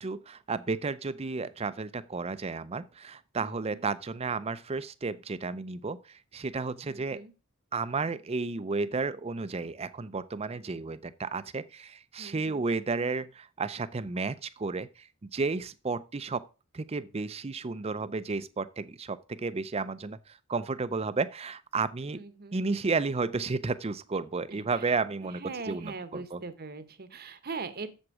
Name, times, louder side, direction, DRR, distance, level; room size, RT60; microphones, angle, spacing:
voice 1, 0.0-7.2 7.7-16.4 16.7-22.2 22.5-26.4, right 4 dB, 30° right, 0.5 m, -32 dB
voice 2, 3.4-3.9 6.8-7.3 12.2-12.6 22.1-22.6 24.5-25.0 25.3-27.9, right 4 dB, 45° right, 0.9 m, -41 dB
7.8 x 7.3 x 4.8 m
head